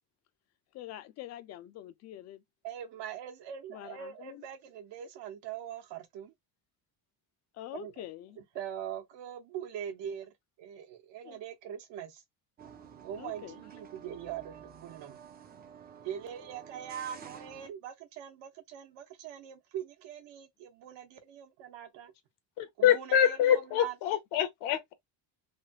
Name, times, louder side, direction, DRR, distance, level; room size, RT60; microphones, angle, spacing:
voice 1, 0.7-2.4 3.7-4.4 7.6-8.4 11.2-11.4 13.2-13.6, left 13 dB, 40° left, 0.4 m, -45 dB
voice 2, 2.6-6.3 7.7-7.9 8.4-12.2 13.0-15.2 16.0-22.1 22.8-23.9, right 9 dB, 70° right, 1.1 m, -42 dB
sound 1, 12.6-17.7, right 7 dB, 20° right, 0.4 m, -51 dB
voice 3, 22.6-24.9, left 10 dB, 75° left, 0.9 m, -26 dB
3.3 x 2.2 x 2.8 m
cardioid pair, 150°, 45 cm